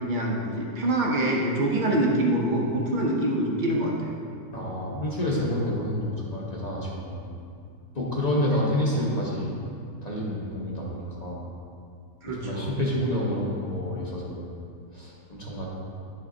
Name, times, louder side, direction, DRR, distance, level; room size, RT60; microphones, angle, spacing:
voice 1, 0.0-4.1 12.2-12.7, right 1 dB, 65° right, -1 dB, 0.4 m, -25 dB
voice 2, 4.5-7.3 7.9-9.5 10.0-11.4 12.3-14.5 14.9-15.7, left 1 dB, 35° left, -4 dB, 0.7 m, -28 dB
10.5 x 3.6 x 3.7 m, 2.4 s
omnidirectional pair, 1.8 m